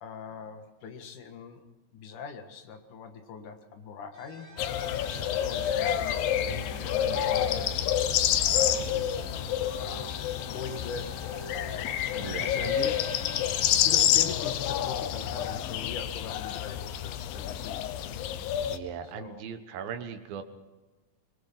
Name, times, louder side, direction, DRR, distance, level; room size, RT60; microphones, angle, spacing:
voice 1, 0.0-1.6 1.9-4.5 5.0-7.9 8.5-9.3 9.8-10.1 10.5-11.2 12.1-12.9 13.8-17.8 19.0-19.4, left 5 dB, 65° left, 6 dB, 3.1 m, -42 dB
sound 1, 4.1-15.4, right 1 dB, 20° right, 3.6 m, -47 dB
sound 2, 4.6-18.8, left 10 dB, 90° left, 2.7 m, -28 dB
voice 2, 12.1-12.9 18.6-20.4, right 7 dB, 85° right, 8 dB, 3.1 m, -38 dB
23.0 x 22.0 x 5.9 m, 1.2 s
omnidirectional pair, 4.0 m